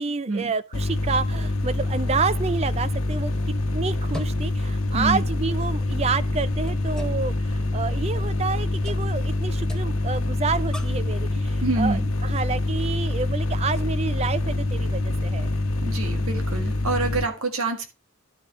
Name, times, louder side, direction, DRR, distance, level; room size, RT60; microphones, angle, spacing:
voice 1, 0.0-15.5, right 4 dB, 30° right, 0.4 m, -29 dB
sound 1, 0.7-17.2, left 2 dB, 75° left, 1.0 m, -25 dB
voice 2, 4.9-5.2 11.6-12.1 15.8-17.9, right 2 dB, 90° right, 1.8 m, -26 dB
sound 2, 6.6-11.1, left 1 dB, 5° left, 0.8 m, -45 dB
11.5 x 5.3 x 4.5 m
head